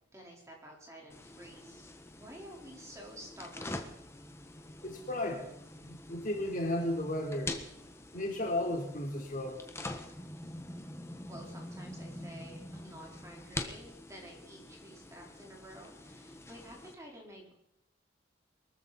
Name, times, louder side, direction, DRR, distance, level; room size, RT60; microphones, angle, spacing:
voice 1, 0.1-1.8 2.2-3.9 11.2-17.5, equal, 15° right, -1 dB, 4.1 m, -51 dB
sound 1, 1.1-16.9, left 2 dB, 15° left, 1.4 m, -45 dB
voice 2, 4.8-5.4 5.7-7.5 8.1-9.6, left 1 dB, 45° left, 1 dB, 3.6 m, -34 dB
23.0 x 14.0 x 4.2 m, 0.81 s
head